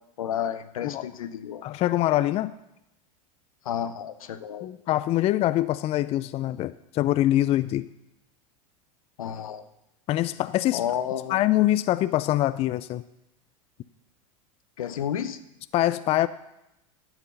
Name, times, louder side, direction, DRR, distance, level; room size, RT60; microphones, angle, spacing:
voice 1, 0.2-1.6 3.6-4.7 9.2-9.6 10.7-11.4 14.8-15.4, left 9 dB, 80° left, 12 dB, 0.8 m, -31 dB
voice 2, 1.6-2.5 4.6-7.9 10.1-10.8 11.3-13.0 15.7-16.3, left 14 dB, 35° left, 14 dB, 0.4 m, -24 dB
12.0 x 7.9 x 5.7 m, 0.86 s
hypercardioid pair, 85°, 18 cm